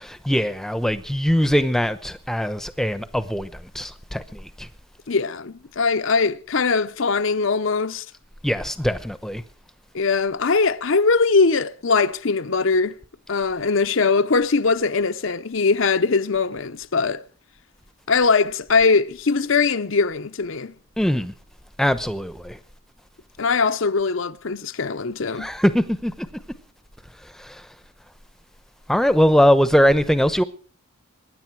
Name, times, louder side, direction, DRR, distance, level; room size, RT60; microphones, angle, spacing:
voice 1, 0.2-3.5 3.7-4.7 8.4-9.4 21.0-21.3 21.8-22.6 25.4-26.1 27.4-27.6 28.9-30.4, equal, ahead, 0.8 m, -21 dB
voice 2, 5.1-8.0 9.9-13.0 13.3-17.2 18.1-20.7 23.4-25.5, left 4 dB, 60° left, 0.7 m, -21 dB
23.0 x 10.5 x 4.7 m
head